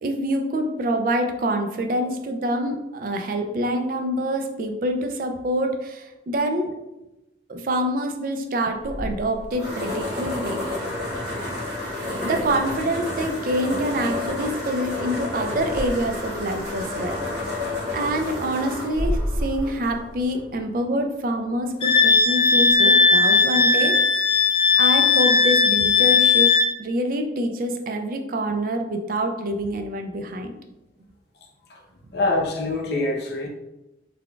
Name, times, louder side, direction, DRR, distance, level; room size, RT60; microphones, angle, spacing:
voice 1, 0.0-6.7 7.5-10.6 12.2-17.5 17.9-24.0 24.8-26.5 26.8-30.5, right 1 dB, 50° right, 5 dB, 0.4 m, -26 dB
sound 1, 8.8-20.6, left 1 dB, 65° right, 1.5 m, -30 dB
Wind instrument woodwind instrument, 21.8-26.7, left 5 dB, 30° left, 0.3 m, -17 dB
voice 2, 32.1-33.5, left 2 dB, 60° left, 1 dB, 0.6 m, -24 dB
3.8 x 3.4 x 2.2 m, 0.96 s
head